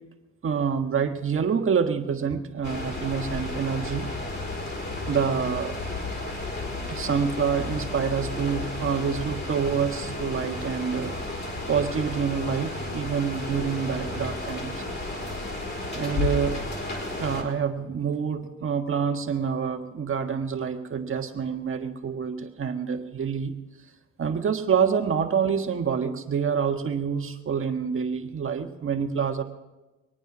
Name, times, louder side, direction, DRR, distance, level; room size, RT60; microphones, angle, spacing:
voice 1, 0.4-4.1 5.1-5.7 6.9-11.2 11.7-15.2 15.9-16.6 17.2-23.5 24.2-29.4, right 6 dB, 45° right, 5 dB, 1.6 m, -27 dB
sound 1, 2.6-17.4, left 2 dB, 35° left, 4.6 m, -33 dB
23.5 x 9.2 x 6.1 m, 1.1 s
cardioid pair, 90°, 30 cm